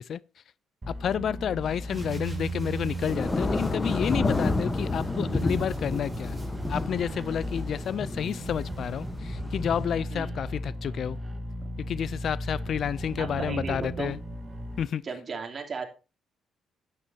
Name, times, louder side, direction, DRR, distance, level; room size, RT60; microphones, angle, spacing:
sound 1, 0.8-14.8, right 1 dB, 25° right, 2.1 m, -36 dB
voice 1, 0.9-6.4 6.7-11.2 11.8-14.2 14.8-15.1, left 8 dB, 60° left, 0.4 m, -30 dB
Thunder / Rain, 1.6-9.9, left 3 dB, 25° left, 1.1 m, -31 dB
sound 2, 1.7-9.2, right 1 dB, 10° right, 3.5 m, -49 dB
voice 2, 13.2-14.1 15.0-15.9, right 5 dB, 45° right, 2.9 m, -35 dB
12.5 x 9.8 x 2.8 m
cardioid pair, 90°, 0 cm